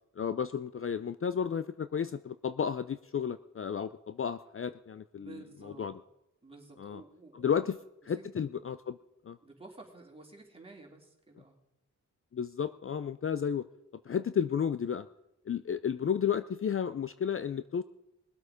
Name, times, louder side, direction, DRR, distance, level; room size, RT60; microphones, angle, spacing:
voice 1, 0.2-5.4 5.6-5.9 6.8-7.0 7.3-7.8 8.1-9.0 9.3-9.4 12.3-13.7 14.1-15.1 15.5-17.8, left 7 dB, 45° left, 14 dB, 0.5 m, -32 dB
voice 2, 5.1-5.9 6.4-7.6 8.0-8.3 9.4-11.6, right 3 dB, 15° right, 0 dB, 3.4 m, -52 dB
20.5 x 8.1 x 5.0 m, 0.87 s
cardioid pair, 75°, 32 cm